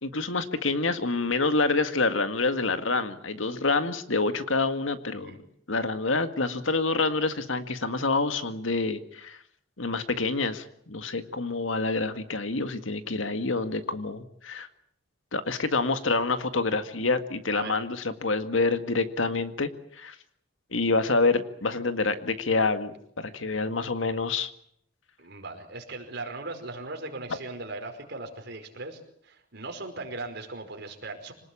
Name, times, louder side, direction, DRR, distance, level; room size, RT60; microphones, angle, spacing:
voice 1, 0.0-5.4 5.7-9.4 9.8-14.7 15.3-19.7 20.0-20.2 20.7-24.5, left 3 dB, 85° left, 9 dB, 1.9 m, -27 dB
voice 2, 25.2-31.3, right 2 dB, 60° right, 4 dB, 5.1 m, -38 dB
26.0 x 19.0 x 8.8 m, 0.69 s
head